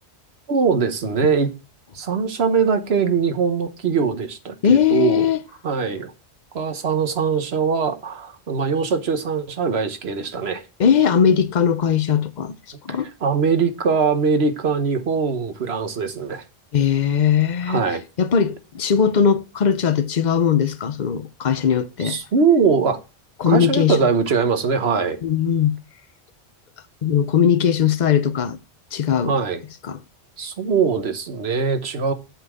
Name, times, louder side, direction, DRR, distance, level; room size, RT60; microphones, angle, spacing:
voice 1, 0.5-1.5 1.9-5.3 5.6-6.1 6.5-10.6 12.9-16.4 17.7-18.0 22.0-23.0 23.5-25.2 29.2-29.6 30.4-32.1, right 5 dB, 70° right, 1.3 m, -21 dB
voice 2, 4.6-5.4 10.8-12.5 12.8-13.1 16.7-17.8 18.2-22.2 23.4-24.0 25.2-25.8 27.0-28.6 28.9-29.3 29.9-30.0, left 7 dB, 45° left, 0.8 m, -19 dB
8.0 x 4.2 x 6.1 m
omnidirectional pair, 1.1 m